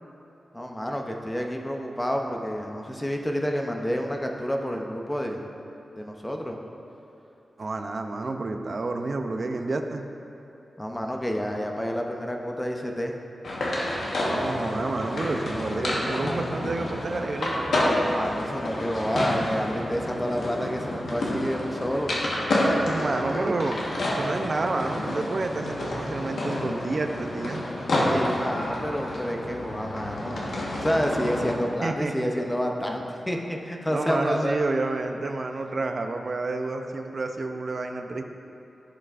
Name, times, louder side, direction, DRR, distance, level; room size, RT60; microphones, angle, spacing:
voice 1, 0.5-5.4 6.0-6.6 10.8-13.1 17.7-22.1 28.0-34.6, equal, 10° left, 1 dB, 0.6 m, -29 dB
voice 2, 7.6-10.1 14.2-17.8 22.8-23.8 24.1-27.6 31.8-32.3 33.9-38.2, right 3 dB, 40° right, 5 dB, 0.5 m, -29 dB
sound 1, 13.4-31.5, left 1 dB, 75° left, 1.3 m, -29 dB
14.5 x 5.5 x 2.5 m, 2.9 s
wide cardioid pair, 170°, 0 cm